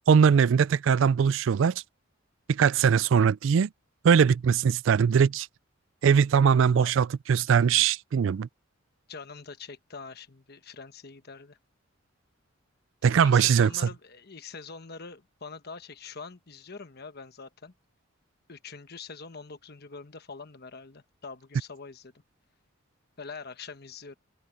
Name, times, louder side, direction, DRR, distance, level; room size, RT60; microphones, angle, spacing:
voice 1, 0.1-1.8 2.5-3.7 4.0-5.5 6.0-8.5 13.0-13.7, right 7 dB, 65° right, 0.3 m, -21 dB
voice 2, 6.5-6.9 9.1-11.6 13.0-17.7 18.5-22.1 23.2-24.2, left 4 dB, 50° left, 1.2 m, -44 dB
open air
head